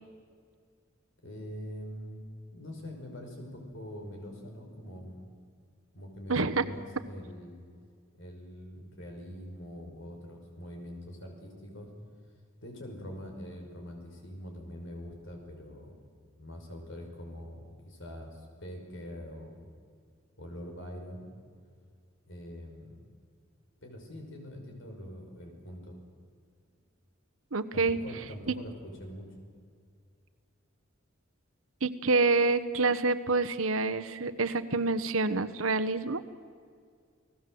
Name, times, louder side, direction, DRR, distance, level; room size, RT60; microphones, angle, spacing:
voice 1, 1.2-2.2 2.5-5.3 5.9-7.6 8.1-11.9 12.6-15.9 16.2-19.7 20.4-21.2 22.3-23.0 23.8-26.0 27.7-29.3, equal, 65° left, 3 dB, 5.8 m, -44 dB
voice 2, 6.3-6.6 27.5-28.0 28.5-28.6 31.8-36.2, right 3 dB, 90° right, 10 dB, 1.2 m, -27 dB
30.0 x 18.5 x 7.8 m, 2.1 s
head